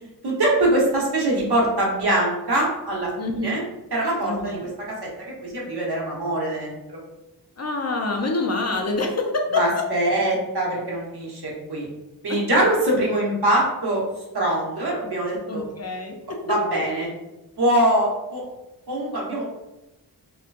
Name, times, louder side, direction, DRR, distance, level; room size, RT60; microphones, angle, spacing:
voice 1, 0.2-3.1 3.4-3.6 3.9-4.7 5.0-5.1 5.4-7.0 9.5-11.4 11.7-11.9 12.2-14.0 14.3-15.6 16.5-17.1 17.6-18.4 18.9-19.4, right 1 dB, 65° right, -3 dB, 1.2 m, -23 dB
voice 2, 3.2-3.6 4.2-4.7 7.6-10.1 12.3-12.6 15.4-16.4, left 3 dB, 40° left, 2 dB, 0.6 m, -27 dB
4.3 x 2.3 x 2.5 m, 0.96 s
wide cardioid pair, 80°, 42 cm